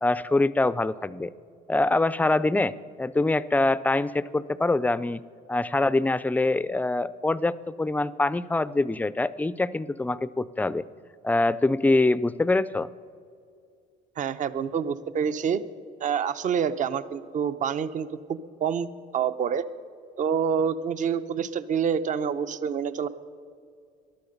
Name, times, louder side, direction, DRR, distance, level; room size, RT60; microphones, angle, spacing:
voice 1, 0.0-1.3 1.7-2.7 3.0-5.2 5.5-10.8 11.2-12.9, left 2 dB, 10° left, 17 dB, 0.4 m, -24 dB
voice 2, 14.2-15.6 16.0-18.9 19.1-19.6 20.2-23.1, right 7 dB, 50° right, 13 dB, 0.7 m, -27 dB
19.0 x 12.0 x 5.4 m, 2.3 s
cardioid pair, 110°, 17 cm